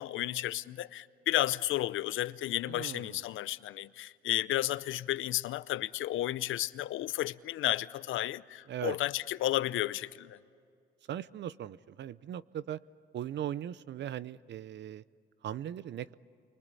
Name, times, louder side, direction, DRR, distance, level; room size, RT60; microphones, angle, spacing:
voice 1, 0.0-10.4, left 14 dB, 80° left, 0.7 m, -32 dB
voice 2, 2.7-3.2 8.7-9.0 11.1-12.8 13.1-15.0 15.4-16.1, right 11 dB, 65° right, 0.6 m, -39 dB
29.0 x 24.5 x 8.4 m
cardioid pair, 90°, 20 cm